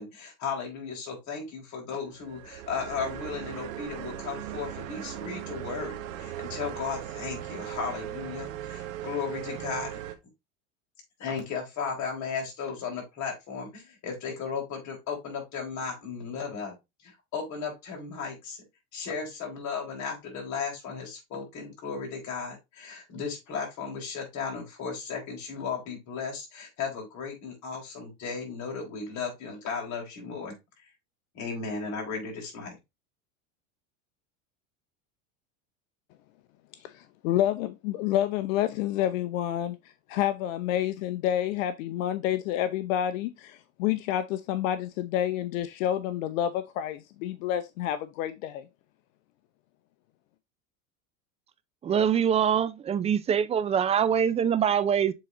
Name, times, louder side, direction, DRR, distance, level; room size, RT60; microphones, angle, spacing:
voice 1, 0.0-10.0 11.2-16.7 17.0-18.6 18.9-30.6 31.3-32.8, left 5 dB, 45° left, 4.2 m, -35 dB
sound 1, 2.1-10.1, right 12 dB, 75° right, 1.3 m, -38 dB
voice 2, 36.8-39.8 40.1-48.7, left 11 dB, 75° left, 0.8 m, -29 dB
voice 3, 51.8-55.1, right 8 dB, 15° right, 0.3 m, -24 dB
7.7 x 4.0 x 3.1 m
supercardioid pair, 120°, 40 cm